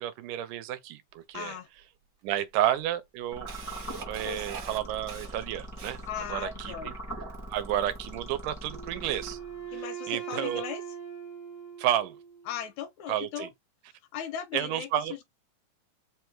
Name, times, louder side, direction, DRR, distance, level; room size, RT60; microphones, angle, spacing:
voice 1, 0.0-1.5 2.2-3.5 4.1-6.0 6.3-6.9 7.5-9.4 9.7-10.6 11.8-12.2 13.1-13.5 14.5-15.2, right 12 dB, 85° right, 2.2 m, -31 dB
voice 2, 1.3-1.7 4.2-4.5 6.1-6.9 9.7-10.8 12.5-13.5 13.9-15.2, left 9 dB, 80° left, 1.8 m, -38 dB
Camera, 1.3-1.4 2.3-2.4 2.8-6.3, right 6 dB, 65° right, 1.0 m, -43 dB
sound 1, 3.3-9.8, right 1 dB, 25° left, 0.4 m, -42 dB
Wind instrument woodwind instrument, 8.7-12.6, right 9 dB, 45° right, 0.5 m, -41 dB
5.1 x 2.3 x 4.4 m
omnidirectional pair, 3.6 m